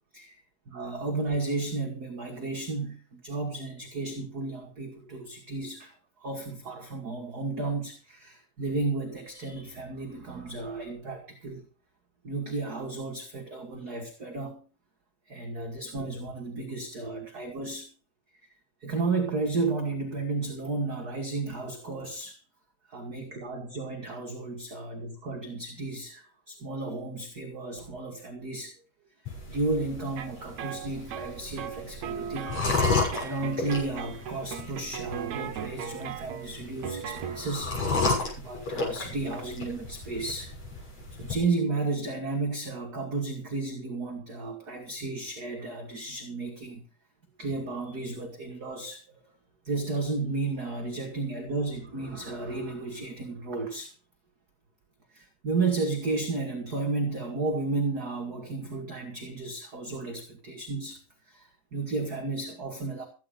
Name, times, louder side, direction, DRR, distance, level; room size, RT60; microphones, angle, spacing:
voice 1, 0.7-11.6 12.2-14.6 15.3-17.9 18.8-22.4 22.9-28.7 29.5-32.6 32.8-37.7 38.4-40.5 41.1-46.8 47.4-49.2 49.6-53.9 55.1-61.0 61.3-63.1, right 3 dB, 35° right, 2 dB, 2.3 m, -33 dB
sound 1, 29.3-41.3, left 3 dB, 55° left, 8.1 m, -33 dB
sound 2, 30.2-37.6, right 8 dB, 70° right, 2.2 m, -38 dB
15.0 x 10.5 x 5.2 m, 0.36 s
omnidirectional pair, 3.5 m